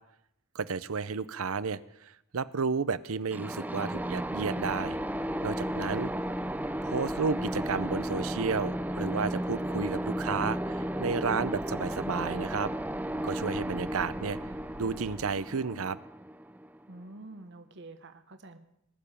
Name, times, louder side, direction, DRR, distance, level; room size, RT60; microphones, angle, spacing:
voice 1, 0.5-5.0 5.4-6.1 6.8-12.7 13.2-14.4 14.8-16.0, right 5 dB, 75° right, 18 dB, 0.7 m, -32 dB
sound 1, 3.3-17.0, right 1 dB, 10° right, 0.5 m, -34 dB
sound 2, 3.9-15.3, left 1 dB, 80° left, 2.6 m, -49 dB
voice 2, 5.9-6.3 16.9-18.6, right 2 dB, 55° right, 8 dB, 1.1 m, -48 dB
20.0 x 7.0 x 10.0 m, 0.79 s
head